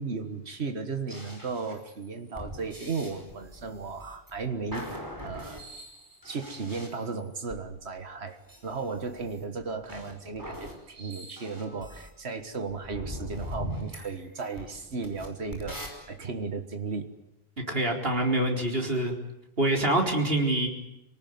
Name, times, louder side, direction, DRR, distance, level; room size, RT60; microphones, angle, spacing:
voice 1, 0.0-5.6 6.2-17.1, right 4 dB, 85° right, 7 dB, 2.0 m, -35 dB
sound 1, 1.1-7.6 8.5-12.1 12.7-15.9, equal, 20° right, 5.2 m, -42 dB
voice 2, 17.6-19.1 19.6-20.7, right 1 dB, 65° right, 2 dB, 4.5 m, -25 dB
28.0 x 18.5 x 9.4 m, 0.87 s
omnidirectional pair, 1.1 m